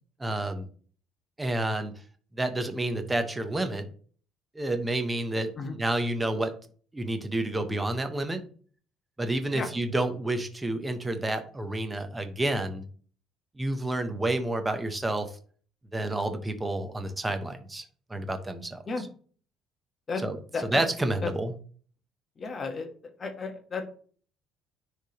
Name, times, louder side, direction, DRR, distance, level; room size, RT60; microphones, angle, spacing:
voice 1, 0.2-0.7 1.4-1.9 2.4-3.9 4.5-6.6 6.9-8.4 9.2-12.9 13.6-15.3 15.9-17.8 18.1-19.1 20.2-20.4 20.6-21.5, right 1 dB, 10° right, 8 dB, 0.7 m, -29 dB
voice 2, 20.5-20.8 21.2-21.3 22.4-22.9 23.2-23.8, left 4 dB, 25° left, 4 dB, 1.1 m, -33 dB
9.9 x 3.3 x 2.8 m, 0.43 s
cardioid pair, 170°, 0 cm